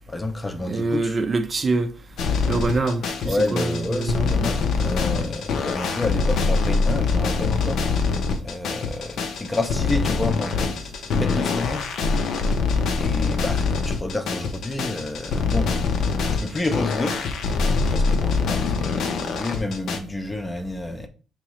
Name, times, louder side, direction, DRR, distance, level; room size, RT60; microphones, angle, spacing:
voice 1, 0.1-1.2 3.2-7.9 8.4-11.9 12.9-15.8 16.3-17.3 17.9-21.1, left 2 dB, 20° left, 0.6 m, -29 dB
voice 2, 0.7-1.9 2.5-4.4, right 3 dB, 40° right, 0.5 m, -25 dB
sound 1, 2.2-20.0, left 4 dB, 75° left, 0.6 m, -24 dB
4.7 x 2.9 x 3.0 m
cardioid pair, 90°, 0 cm